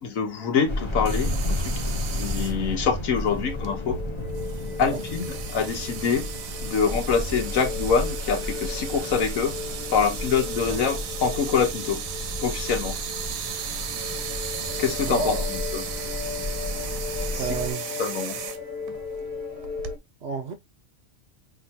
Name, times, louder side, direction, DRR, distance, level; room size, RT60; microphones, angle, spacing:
voice 1, 0.0-1.7 2.1-4.0 4.8-6.3 6.6-9.6 9.9-12.0 12.4-13.0 14.8-15.4 17.3-17.4 18.0-18.4, left 6 dB, 80° left, 1.3 m, -25 dB
sound 1, 0.7-17.7, left 1 dB, 25° left, 0.9 m, -33 dB
sound 2, 1.0-20.0, right 7 dB, 80° right, 1.2 m, -36 dB
sound 3, 3.4-20.0, left 5 dB, 30° right, 3.9 m, -37 dB
voice 2, 15.1-15.5 17.4-18.2 20.2-20.5, right 5 dB, 60° right, 1.0 m, -32 dB
5.8 x 2.9 x 2.7 m
omnidirectional pair, 1.4 m